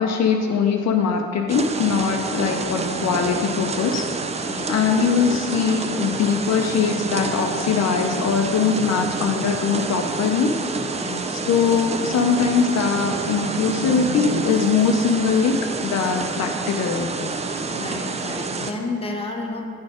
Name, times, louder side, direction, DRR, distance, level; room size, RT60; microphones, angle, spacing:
voice 1, 0.0-4.0 4.7-10.5 11.5-15.6 15.8-17.4, left 6 dB, 60° left, 3 dB, 0.6 m, -21 dB
sound 1, 1.5-18.7, right 4 dB, 20° right, 0.4 m, -28 dB
voice 2, 2.3-2.7 4.5-5.1 11.0-11.4 17.7-19.6, left 3 dB, 20° left, 2 dB, 0.9 m, -32 dB
sound 2, 2.7-3.5 5.2-9.7 11.2-14.8, right 4 dB, 80° right, 0.8 m, -36 dB
9.5 x 4.2 x 4.9 m, 2.4 s
cardioid pair, 90°, 30 cm